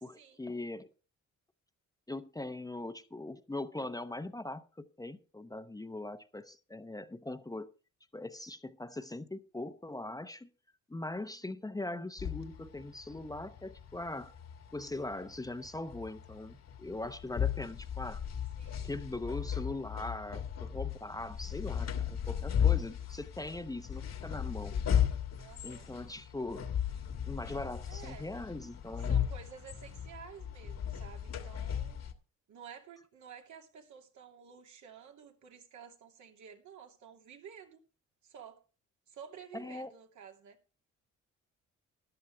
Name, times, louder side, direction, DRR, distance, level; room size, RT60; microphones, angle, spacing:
voice 1, 0.0-0.9 2.1-7.7 8.1-10.5 10.9-14.3 14.7-18.2 18.8-24.8 25.6-26.7 27.2-29.1 39.5-39.9, left 2 dB, 10° left, 10 dB, 0.8 m, -41 dB
voice 2, 11.1-11.4 18.6-18.9 25.4-25.9 27.9-28.3 29.1-32.0 32.5-37.8 38.2-38.6 39.1-40.6, right 7 dB, 70° right, 3 dB, 2.6 m, -52 dB
sound 1, 12.2-32.1, left 9 dB, 60° left, 1.8 m, -36 dB
13.5 x 11.0 x 3.4 m, 0.35 s
cardioid pair, 90°, 30 cm